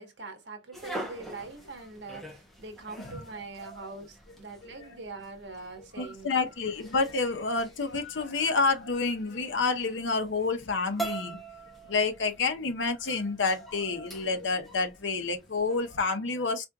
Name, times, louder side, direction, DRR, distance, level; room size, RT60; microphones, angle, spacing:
voice 1, 0.0-6.4, right 3 dB, 70° right, 1.3 m, -43 dB
sound 1, 0.7-16.0, right 2 dB, ahead, 0.9 m, -45 dB
voice 2, 3.0-3.9 4.6-4.9 6.0-11.4 11.9-16.7, left 4 dB, 85° left, 0.9 m, -29 dB
4.4 x 3.5 x 2.4 m
head